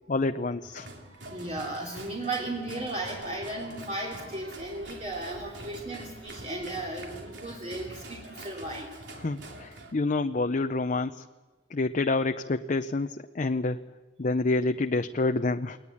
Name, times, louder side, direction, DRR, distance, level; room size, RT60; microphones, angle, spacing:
voice 1, 0.1-0.9 9.2-11.2 11.7-13.8 14.2-15.8, left 3 dB, 45° left, 8 dB, 0.6 m, -28 dB
sound 1, 0.6-9.9, right 1 dB, 75° right, 3.3 m, -45 dB
voice 2, 1.3-8.9, right 2 dB, 40° right, -2 dB, 2.9 m, -35 dB
21.0 x 19.5 x 8.6 m, 1.3 s
head